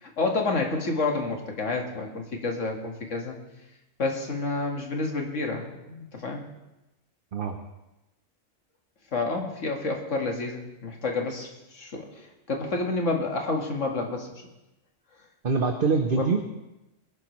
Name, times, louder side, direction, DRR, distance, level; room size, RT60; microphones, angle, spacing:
voice 1, 0.0-3.4 4.0-6.4 9.1-11.5 11.7-14.3 16.2-16.3, left 3 dB, 65° left, 2 dB, 2.2 m, -29 dB
voice 2, 15.4-16.5, right 4 dB, 45° right, 5 dB, 1.0 m, -24 dB
21.5 x 11.5 x 3.2 m, 0.97 s
omnidirectional pair, 1.4 m